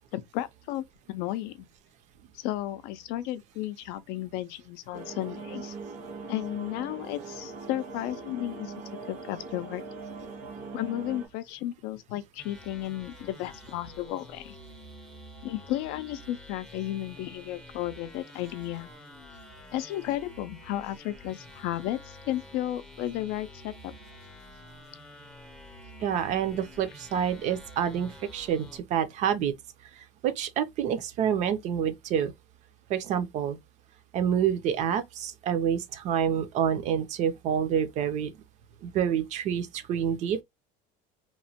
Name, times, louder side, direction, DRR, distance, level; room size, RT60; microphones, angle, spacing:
voice 1, 0.1-1.7 2.3-5.7 6.3-8.7 9.1-9.8 10.7-14.6 15.4-18.9 19.7-23.9, left 14 dB, 65° left, 0.4 m, -33 dB
sound 1, 4.9-11.3, right 4 dB, 80° right, 1.4 m, -41 dB
sound 2, 12.4-28.8, left 1 dB, 5° left, 0.5 m, -49 dB
voice 2, 26.0-29.5 30.0-32.3 32.9-33.6 34.1-38.3 38.8-40.4, right 8 dB, 45° right, 0.5 m, -28 dB
3.0 x 2.1 x 2.7 m
cardioid pair, 155°, 17 cm